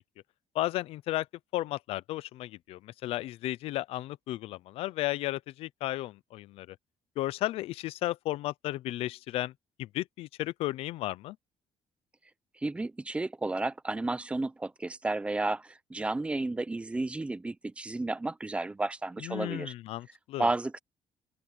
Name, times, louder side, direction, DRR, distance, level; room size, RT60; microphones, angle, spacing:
voice 1, 0.5-1.3 1.5-6.8 7.2-9.5 9.8-11.4 19.2-20.5, left 16 dB, 80° left, 0.6 m, -34 dB
voice 2, 12.6-19.7 20.4-20.8, right 2 dB, 10° right, 0.8 m, -32 dB
open air
cardioid pair, 145°, 10 cm